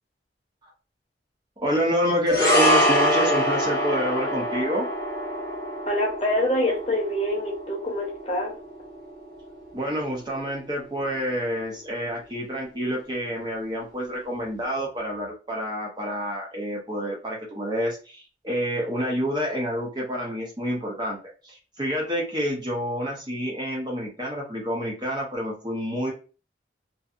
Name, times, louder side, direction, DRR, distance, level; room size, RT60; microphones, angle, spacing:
voice 1, 1.6-4.9 9.7-21.2 21.4-26.1, equal, 25° right, -1 dB, 0.6 m, -28 dB
sound 1, 2.3-10.7 11.0-11.2, equal, 55° right, 1.3 m, -26 dB
voice 2, 5.9-8.5, left 1 dB, 35° left, -1 dB, 0.8 m, -25 dB
2.6 x 2.5 x 2.3 m, 0.35 s
head